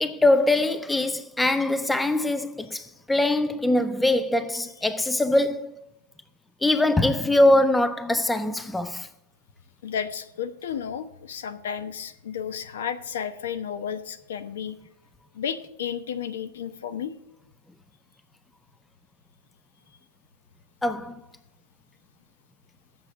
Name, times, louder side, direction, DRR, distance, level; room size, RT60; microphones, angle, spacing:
voice 1, 0.0-5.9 6.6-9.1 20.8-21.2, left 1 dB, 5° left, 0.3 m, -22 dB
voice 2, 9.8-14.7 15.3-17.1, left 8 dB, 80° left, 0.9 m, -32 dB
8.4 x 6.5 x 7.3 m
supercardioid pair, 155°, 0 cm